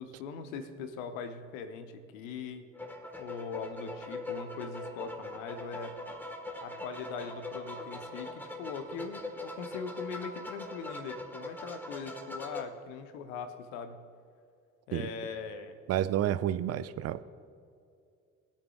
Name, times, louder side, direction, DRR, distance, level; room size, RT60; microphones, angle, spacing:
voice 1, 0.0-2.6 3.2-5.9 6.6-14.0 14.9-15.7, left 5 dB, 70° left, 8 dB, 1.0 m, -41 dB
sound 1, 2.7-12.6, left 2 dB, 5° left, 1.5 m, -42 dB
voice 2, 15.9-17.2, right 11 dB, 40° right, 15 dB, 0.5 m, -30 dB
21.0 x 8.6 x 2.4 m, 2.4 s
figure-of-eight pair, 50°, 41 cm